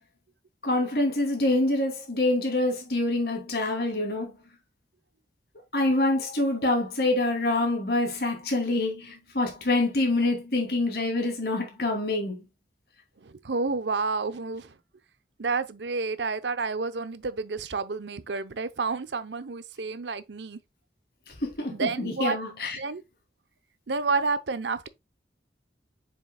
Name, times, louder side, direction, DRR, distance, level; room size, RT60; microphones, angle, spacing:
voice 1, 0.6-4.3 5.7-12.4 21.3-22.8, left 2 dB, 60° left, 2.7 m, -26 dB
voice 2, 13.2-14.7 15.4-20.6 21.7-22.4 22.8-23.0 23.9-24.9, right 4 dB, 80° right, 0.7 m, -30 dB
7.3 x 6.1 x 2.2 m
head